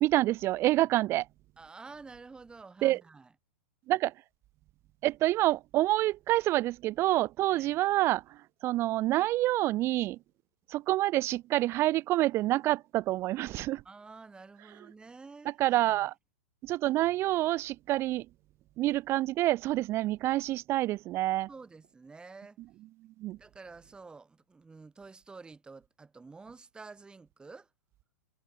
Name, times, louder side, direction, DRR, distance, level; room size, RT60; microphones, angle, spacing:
voice 1, 0.0-1.3 2.8-3.0 3.9-4.1 5.0-10.2 10.7-13.8 15.6-16.1 16.6-18.3 18.8-21.5 23.2-23.4, right 16 dB, 35° right, 0.6 m, -27 dB
voice 2, 1.6-3.3 7.5-7.8 13.8-16.1 21.5-22.6 23.3-27.7, right 4 dB, 10° right, 3.6 m, -50 dB
hypercardioid pair, 105°, 8 cm